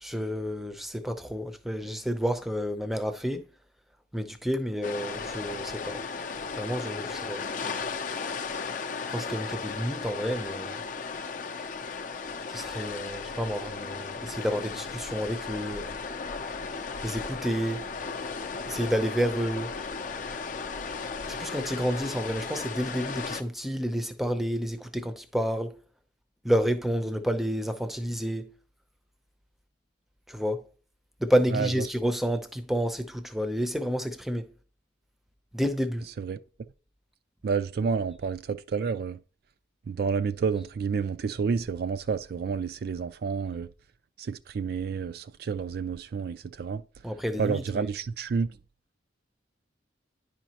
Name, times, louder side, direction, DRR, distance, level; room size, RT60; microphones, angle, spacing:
voice 1, 0.0-3.5 4.1-6.0 6.6-7.4 9.1-10.8 12.5-15.9 17.0-17.9 18.7-19.7 21.3-25.8 26.4-28.5 30.3-30.6 31.2-34.5 35.5-36.1 47.0-47.9, equal, ahead, 0.6 m, -30 dB
sound 1, 4.8-23.4, left 4 dB, 45° left, 0.5 m, -35 dB
voice 2, 37.4-39.2 39.9-43.7 44.2-46.8 47.4-48.5, right 5 dB, 55° right, 0.3 m, -29 dB
10.0 x 5.1 x 2.9 m
head